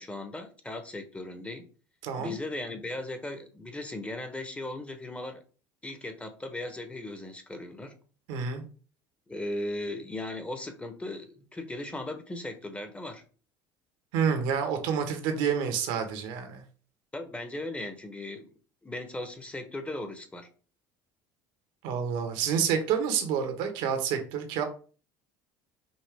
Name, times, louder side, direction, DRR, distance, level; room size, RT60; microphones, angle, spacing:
voice 1, 0.0-1.7 2.2-5.4 5.8-8.0 9.3-13.2 17.1-18.5 18.8-20.5, left 2 dB, 10° left, 1.0 m, -37 dB
voice 2, 2.0-2.3 8.3-8.6 14.1-16.6 21.8-24.6, right 7 dB, 75° right, 1.3 m, -28 dB
5.4 x 2.8 x 3.4 m
supercardioid pair, 95°, 10 cm